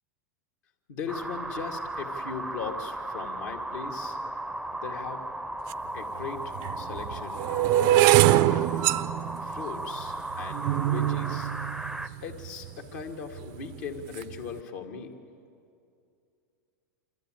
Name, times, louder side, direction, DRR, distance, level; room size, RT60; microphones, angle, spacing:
voice 1, 0.9-4.2 4.7-5.2 5.9-7.4 7.9-8.8 9.4-11.5 12.2-15.1, left 6 dB, 65° left, 3 dB, 2.3 m, -39 dB
sound 1, 1.1-12.1, right 1 dB, 5° right, 0.6 m, -36 dB
sound 2, 5.7-5.8 6.5-12.7 13.4-13.7 14.0-14.4, right 15 dB, 50° right, 0.5 m, -24 dB
26.5 x 13.0 x 9.0 m, 2.5 s
hypercardioid pair, 105°, 10 cm